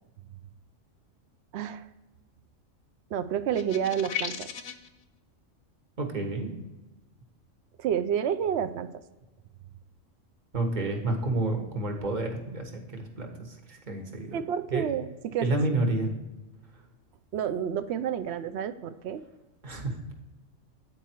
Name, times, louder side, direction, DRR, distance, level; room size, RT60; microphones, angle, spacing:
voice 1, 1.5-1.9 3.1-4.5 7.8-8.9 14.3-15.6 17.3-19.2, right 8 dB, 65° right, 12 dB, 0.7 m, -29 dB
sound 1, 3.5-4.9, left 8 dB, 55° left, 0.8 m, -35 dB
voice 2, 6.0-6.5 10.5-14.4 14.7-14.9 15.4-16.1 19.6-20.1, right 2 dB, 35° right, 3 dB, 1.3 m, -30 dB
8.9 x 4.7 x 4.4 m, 1.1 s
omnidirectional pair, 1.3 m